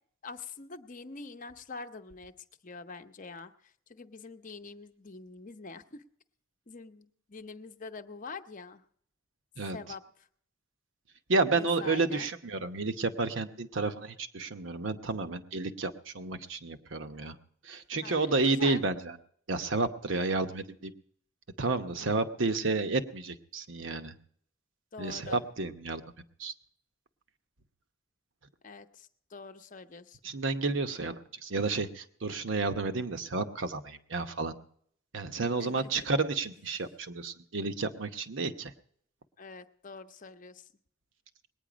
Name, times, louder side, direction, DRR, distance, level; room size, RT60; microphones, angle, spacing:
voice 1, 0.2-2.3 2.6-6.0 6.7-8.8 9.7-10.0 11.5-12.3 18.0-18.8 24.9-25.4 28.6-30.2 35.4-36.1 39.4-40.7, left 4 dB, 40° left, 8 dB, 0.8 m, -45 dB
voice 2, 11.3-17.4 17.6-19.2 19.5-20.9 21.6-24.1 25.0-26.0 26.4-26.5 30.2-34.5 35.1-38.7, right 3 dB, 65° right, 8 dB, 0.9 m, -31 dB
20.0 x 9.5 x 5.1 m, 0.64 s
head